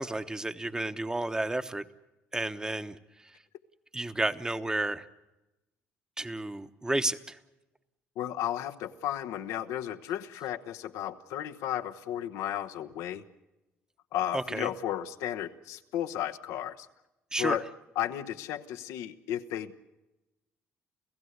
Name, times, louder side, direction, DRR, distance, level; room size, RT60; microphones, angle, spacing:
voice 1, 0.0-1.8 2.3-3.0 3.9-5.0 6.2-7.4 14.3-14.7 17.3-17.6, right 2 dB, 15° right, 11 dB, 1.1 m, -31 dB
voice 2, 8.2-13.2 14.1-16.9 17.4-17.6 18.0-19.8, left 11 dB, 85° left, 8 dB, 1.1 m, -34 dB
29.5 x 15.5 x 8.1 m, 1.0 s
supercardioid pair, 75°, 5 cm